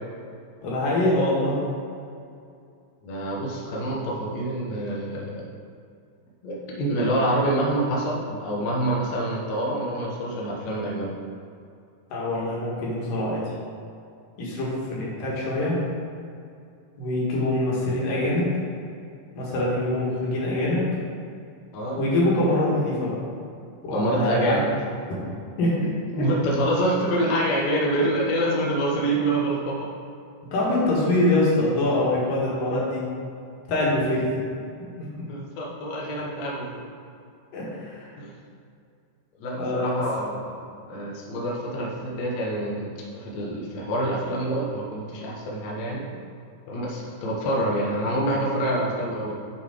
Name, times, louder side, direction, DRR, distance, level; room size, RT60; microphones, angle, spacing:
voice 1, 0.6-1.6 12.1-13.4 14.4-15.8 17.0-18.5 19.3-20.9 22.0-23.2 23.8-24.6 25.6-25.7 30.5-33.1 33.7-34.4 37.5-38.1 39.6-40.0, left 1 dB, 85° left, -5 dB, 3.4 m, -24 dB
voice 2, 3.0-5.4 6.4-11.1 21.7-22.0 23.9-24.6 26.1-29.9 35.3-36.8 38.2-38.3 39.4-40.6 40.9-42.9 43.1-46.0 46.7-49.3, right 1 dB, 65° left, -3 dB, 2.1 m, -26 dB
7.4 x 6.8 x 3.7 m, 2.5 s
omnidirectional pair, 3.8 m